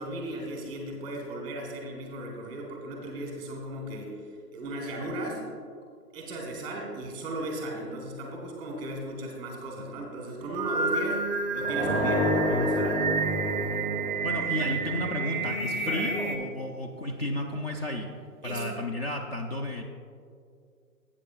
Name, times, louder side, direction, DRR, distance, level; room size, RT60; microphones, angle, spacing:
voice 1, 0.0-5.4 6.1-11.2 11.5-13.0 14.6-14.7 15.8-16.1 18.4-18.6, right 1 dB, 10° right, -1 dB, 1.1 m, -36 dB
Singing, 10.4-16.4, right 4 dB, 30° right, 0.5 m, -30 dB
sound 1, 11.6-16.3, left 1 dB, 10° left, 1.2 m, -30 dB
voice 2, 14.2-18.1 18.4-19.8, left 1 dB, 40° left, 2 dB, 0.6 m, -32 dB
12.0 x 8.5 x 2.4 m, 2.3 s
hypercardioid pair, 150°, 48 cm